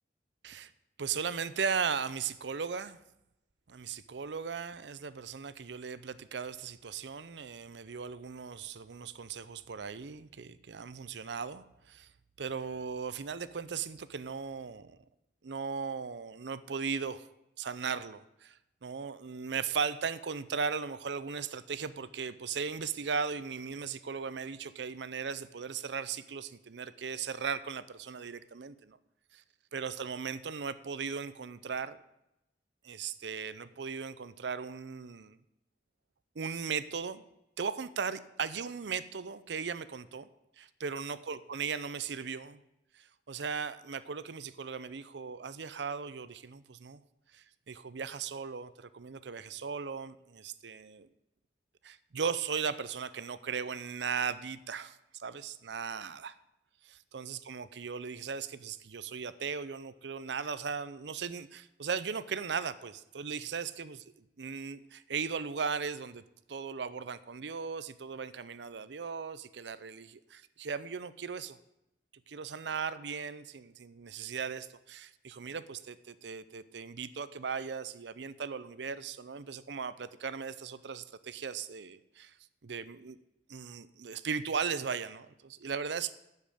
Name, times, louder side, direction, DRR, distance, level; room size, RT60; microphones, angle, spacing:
voice 1, 1.0-3.0 3.7-12.1 12.4-15.0 15.4-17.3 17.6-29.0 29.3-29.4 29.7-32.0 32.8-35.4 36.4-37.2 37.6-40.3 40.6-42.6 42.9-47.0 47.3-51.1 51.8-56.3 57.1-64.0 64.4-66.2 66.5-71.6 72.3-82.3 82.6-83.2 83.5-86.1, right 6 dB, 75° right, 15 dB, 0.6 m, -37 dB
10.5 x 7.5 x 8.4 m, 0.86 s
head